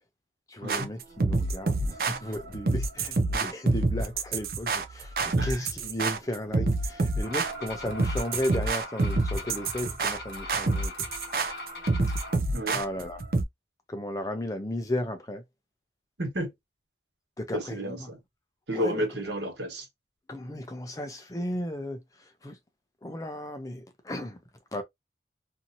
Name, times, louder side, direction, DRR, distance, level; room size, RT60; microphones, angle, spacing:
voice 1, 0.5-10.9 12.7-13.2 13.9-15.4 17.4-18.1 18.7-19.0 20.3-22.6 23.0-24.4 24.7-24.8, left 1 dB, 20° left, 0.5 m, -34 dB
sound 1, 0.7-13.4, right 3 dB, 55° right, 0.5 m, -28 dB
sound 2, 7.2-12.4, left 2 dB, 60° left, 0.9 m, -41 dB
voice 2, 16.2-16.5 17.5-18.2 18.7-19.9, equal, 85° right, 1.3 m, -31 dB
2.7 x 2.7 x 2.6 m
head